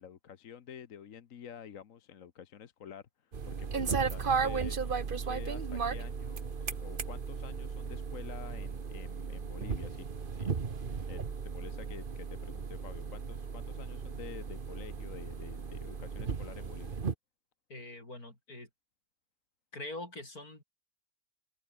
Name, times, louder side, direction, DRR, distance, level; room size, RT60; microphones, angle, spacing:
voice 1, 0.0-10.5 10.8-17.0, left 8 dB, 65° left, 1.4 m, -49 dB
sound 1, 3.3-17.1, right 5 dB, 40° right, 1.3 m, -35 dB
voice 2, 17.7-18.7 19.7-20.6, left 2 dB, 80° left, 7.6 m, -44 dB
open air
omnidirectional pair, 1.6 m